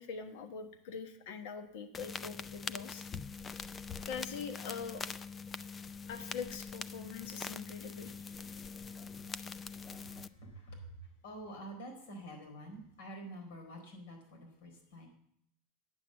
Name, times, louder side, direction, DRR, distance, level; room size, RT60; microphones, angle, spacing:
voice 1, 0.0-3.0 4.0-5.0 6.1-8.1, left 6 dB, 70° left, 7 dB, 1.3 m, -43 dB
sound 1, 1.9-10.3, left 5 dB, 20° left, 0.4 m, -43 dB
voice 2, 9.5-15.1, right 1 dB, 85° left, 3 dB, 4.3 m, -48 dB
9.7 x 7.2 x 7.6 m, 0.69 s
supercardioid pair, 140°, 0 cm